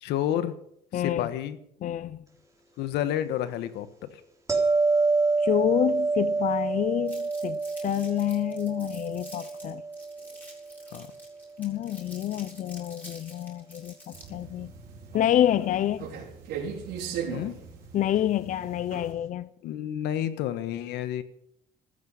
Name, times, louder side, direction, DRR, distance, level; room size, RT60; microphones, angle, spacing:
voice 1, 0.0-0.6 0.9-1.6 2.8-4.1 10.9-11.1 17.3-17.6 19.6-21.2, left 11 dB, 85° left, 1.4 m, -30 dB
voice 2, 0.9-1.3 1.8-2.2 5.4-9.8 11.6-14.7 15.1-16.1 17.9-19.5, left 11 dB, 50° left, 0.5 m, -28 dB
sound 1, 4.5-11.5 16.7-16.9, right 3 dB, 20° right, 3.9 m, -28 dB
Crumpling crinkling, 7.1-14.4, left 1 dB, 10° left, 7.4 m, -49 dB
sound 2, 14.1-19.1, right 7 dB, 85° right, 4.6 m, -38 dB
15.0 x 13.0 x 5.7 m
cardioid pair, 110°, 17 cm